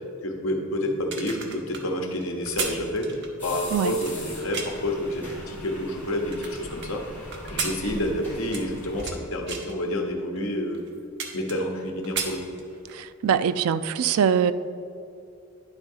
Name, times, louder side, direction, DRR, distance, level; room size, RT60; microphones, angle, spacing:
voice 1, 0.2-7.0 7.4-10.8 11.3-12.4, left 1 dB, 65° left, 2 dB, 1.0 m, -29 dB
sound 1, 0.9-4.9 5.5-6.9 7.3-9.2 9.5-9.8 10.4-10.5 10.7-11.8 12.0-13.0 13.4-13.6, right 5 dB, 50° right, 0.8 m, -34 dB
sound 2, 3.4-9.1, left 1 dB, 10° left, 1.9 m, -40 dB
voice 2, 13.0-14.5, right 7 dB, 70° right, 13 dB, 0.3 m, -23 dB
9.9 x 3.8 x 5.4 m, 2.5 s
head